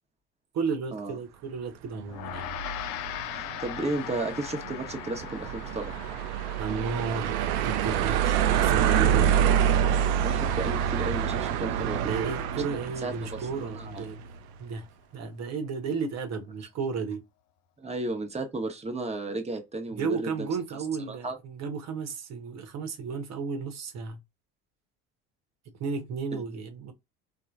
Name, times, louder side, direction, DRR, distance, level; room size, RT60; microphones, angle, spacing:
voice 1, 0.5-2.5 6.6-9.4 12.0-14.2 14.6-14.9 15.1-17.2 19.9-24.2 25.8-26.9, right 5 dB, 55° right, 1.0 m, -33 dB
Gong, 2.1-11.6, left 12 dB, 65° left, 0.5 m, -41 dB
sound 1, 2.2-14.4, right 9 dB, 80° right, 0.5 m, -27 dB
voice 2, 3.4-6.0 10.2-12.0 13.0-14.1 17.8-20.5 21.1-21.4 26.3-26.4, right 2 dB, 20° right, 0.9 m, -34 dB
3.0 x 2.0 x 2.3 m
supercardioid pair, 80°, 32 cm